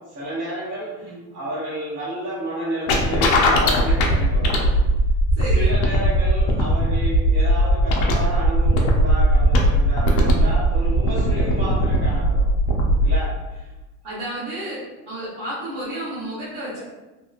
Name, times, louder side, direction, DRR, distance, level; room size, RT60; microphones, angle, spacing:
voice 1, 0.0-4.6 5.5-12.5 13.0-13.7, right 1 dB, 45° right, -11 dB, 1.1 m, -31 dB
sound 1, 2.9-13.2, equal, 80° left, 0.6 m, -19 dB
voice 2, 5.3-5.7 14.0-14.8 15.1-16.8, right 1 dB, 65° right, -10 dB, 1.2 m, -31 dB
2.9 x 2.8 x 2.4 m, 1.1 s
cardioid pair, 155°, 31 cm